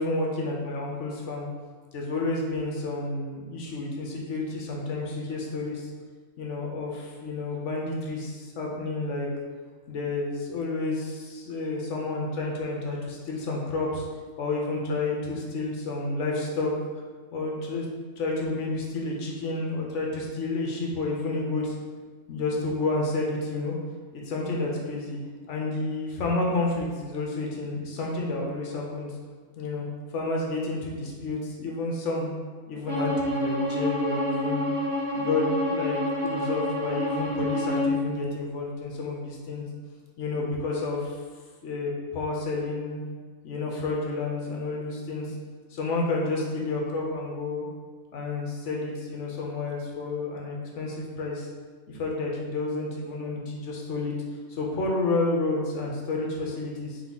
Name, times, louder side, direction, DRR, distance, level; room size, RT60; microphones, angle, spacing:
voice 1, 0.0-1.5 1.9-5.9 6.4-9.3 9.9-14.1 14.4-16.7 17.3-17.9 18.2-21.7 22.3-23.7 24.1-25.2 25.5-29.1 29.6-29.8 30.1-32.3 32.7-34.7 35.1-39.6 40.2-41.2 41.6-43.0 43.4-45.3 45.7-47.7 48.1-51.5 51.9-54.1 54.5-57.0, left 3 dB, 65° left, -1 dB, 1.1 m, -30 dB
Bowed string instrument, 32.9-38.0, left 1 dB, 60° right, 1.3 m, -28 dB
3.6 x 3.5 x 3.9 m, 1.5 s
omnidirectional pair, 1.4 m